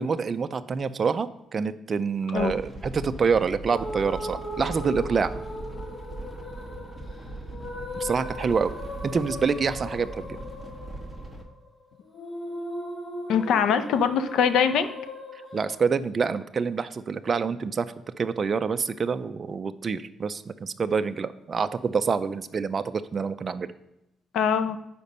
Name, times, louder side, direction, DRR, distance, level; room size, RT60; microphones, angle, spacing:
voice 1, 0.0-5.4 8.0-8.7 9.0-10.4 15.5-23.7, right 5 dB, 40° right, 11 dB, 0.4 m, -27 dB
sound 1, 2.4-11.4, right 2 dB, ahead, 1.3 m, -40 dB
a sad ghost sings to her baby, 3.7-15.8, left 1 dB, 35° left, 1.7 m, -38 dB
voice 2, 13.3-14.9 24.3-24.8, left 7 dB, 80° left, 10 dB, 0.6 m, -22 dB
6.8 x 5.1 x 5.4 m, 0.90 s
cardioid pair, 90°, 0 cm